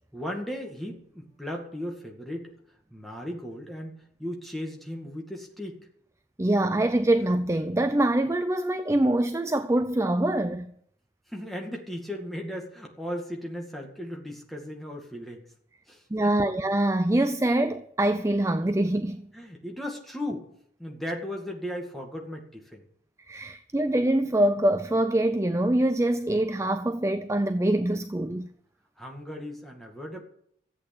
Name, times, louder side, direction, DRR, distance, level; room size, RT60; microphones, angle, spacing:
voice 1, 0.1-2.5 2.9-5.8 11.3-15.4 15.9-16.5 19.3-20.5 20.8-22.8 29.0-30.2, left 1 dB, ahead, 2.2 m, -36 dB
voice 2, 6.4-10.7 16.1-19.2 23.3-28.5, right 1 dB, 15° right, 0.5 m, -24 dB
14.0 x 8.5 x 8.6 m
head